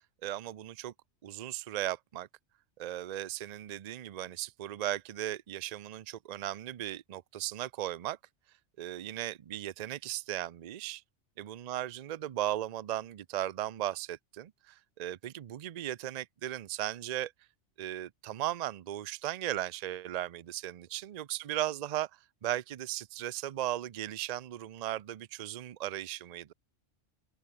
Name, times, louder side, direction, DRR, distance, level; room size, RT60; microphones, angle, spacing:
voice 1, 0.2-0.9 1.2-2.3 2.8-8.2 8.8-11.0 11.4-17.3 17.8-22.1 22.4-26.5, right 13 dB, 50° right, 0.5 m, -37 dB
open air
omnidirectional pair, 1.2 m